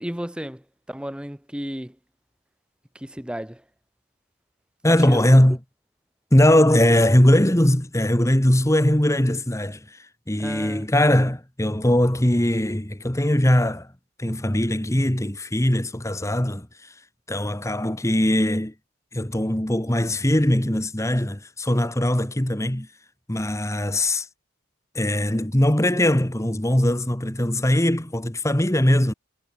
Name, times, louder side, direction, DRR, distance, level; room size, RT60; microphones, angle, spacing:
voice 1, 0.0-2.0 2.9-3.6 4.9-5.3 10.4-10.9, equal, 5° right, 0.9 m, -33 dB
voice 2, 4.8-5.6 6.3-13.9 14.2-16.9 17.3-18.7 19.1-22.9 23.3-24.3 24.9-29.1, left 1 dB, 15° left, 1.4 m, -20 dB
head